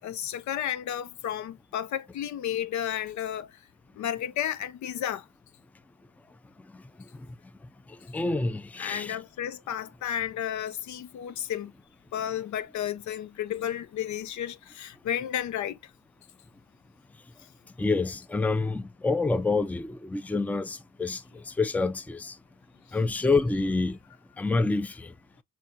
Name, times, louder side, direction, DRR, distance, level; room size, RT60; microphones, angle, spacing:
voice 1, 0.0-3.5 4.0-5.2 8.8-11.7 12.1-15.8, left 10 dB, 70° left, 0.7 m, -32 dB
voice 2, 6.7-7.3 7.9-9.2 17.8-22.4 22.9-24.0 24.4-25.1, left 3 dB, 5° left, 0.5 m, -28 dB
6.0 x 2.7 x 2.5 m
cardioid pair, 90°, 30 cm